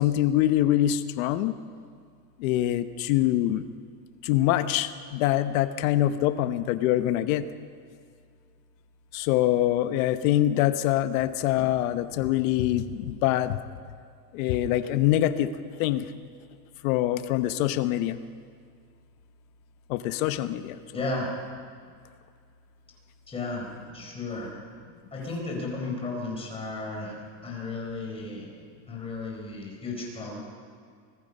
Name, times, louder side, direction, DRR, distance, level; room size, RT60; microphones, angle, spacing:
voice 1, 0.0-1.5 2.4-3.7 4.2-7.4 9.1-13.6 14.3-15.5 15.8-16.1 16.8-18.2 19.9-20.8, left 13 dB, 55° left, 11 dB, 1.0 m, -24 dB
voice 2, 20.9-21.3 23.3-23.7 23.9-24.5 25.1-27.1 27.4-28.5 28.9-30.4, left 3 dB, 10° left, -1 dB, 4.3 m, -34 dB
24.5 x 19.0 x 5.4 m, 2.2 s
supercardioid pair, 170°, 48 cm